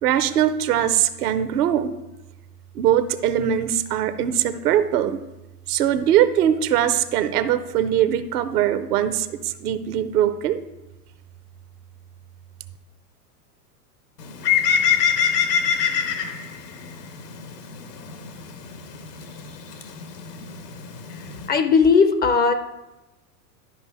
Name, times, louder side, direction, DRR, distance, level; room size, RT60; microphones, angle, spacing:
voice 1, 0.0-1.9 2.7-5.2 5.7-10.6, right 10 dB, 70° right, 12 dB, 0.9 m, -21 dB
Bird, 14.2-21.5, left 7 dB, 80° left, 1.3 m, -26 dB
voice 2, 21.1-22.5, left 5 dB, 20° left, 10 dB, 0.5 m, -18 dB
11.5 x 5.3 x 4.7 m, 1.0 s
hypercardioid pair, 95°, 47 cm